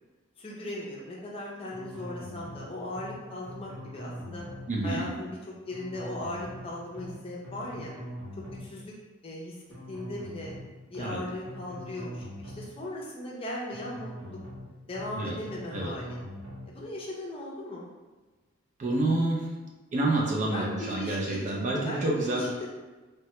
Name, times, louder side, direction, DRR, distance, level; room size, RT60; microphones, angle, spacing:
voice 1, 0.4-4.4 4.8-5.4 5.7-7.9 8.6-8.9 9.2-9.6 9.9-10.5 10.9-14.4 14.9-16.2 16.7-17.8 20.5-22.7, left 1 dB, 25° left, -4 dB, 0.5 m, -38 dB
sound 1, 1.7-2.6 2.9-3.2 3.4-4.7 5.7-6.6 6.9-7.2 7.4-8.7 9.7-10.6 10.9-11.2 11.4-12.7 13.7-14.6 14.9-15.2 15.4-16.7, equal, 85° right, 1.0 m, -42 dB
voice 2, 4.7-5.1 11.0-11.2 15.2-15.3 15.7-15.9 18.8-19.5 19.9-22.5, right 2 dB, 35° right, -2 dB, 0.4 m, -28 dB
3.2 x 2.2 x 2.9 m, 1.2 s
head